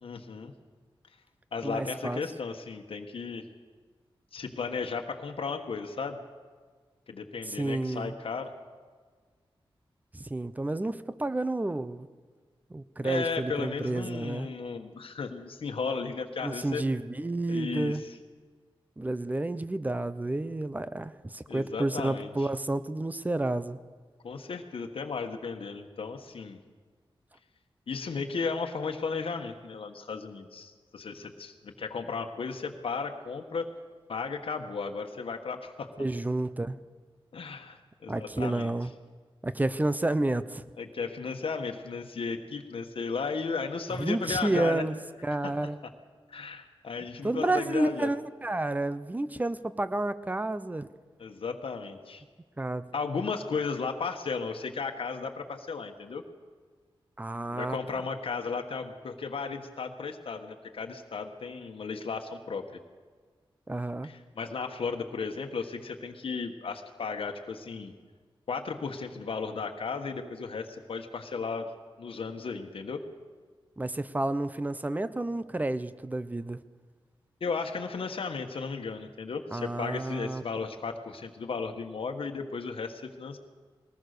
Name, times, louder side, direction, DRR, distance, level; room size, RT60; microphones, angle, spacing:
voice 1, 0.0-0.5 1.5-3.4 4.3-6.2 7.1-8.5 13.0-16.8 17.5-18.2 21.5-22.5 24.2-26.6 27.9-33.7 34.1-35.9 37.3-38.7 40.8-44.8 45.4-45.5 46.3-48.1 51.2-52.2 52.9-56.2 57.5-62.7 64.0-67.9 68.5-71.7 72.0-73.0 77.4-83.4, left 5 dB, 75° left, 4 dB, 1.4 m, -35 dB
voice 2, 1.6-2.2 7.5-8.1 10.1-12.1 12.7-14.5 16.4-18.0 19.0-23.8 36.0-36.8 38.1-38.9 39.4-40.6 43.9-45.0 45.2-45.8 47.2-50.9 52.6-52.9 57.2-57.8 63.7-64.1 73.8-76.6 79.5-80.4, right 2 dB, 15° right, 14 dB, 0.8 m, -30 dB
21.0 x 19.0 x 6.7 m, 1.5 s
wide cardioid pair, 100°, 9 cm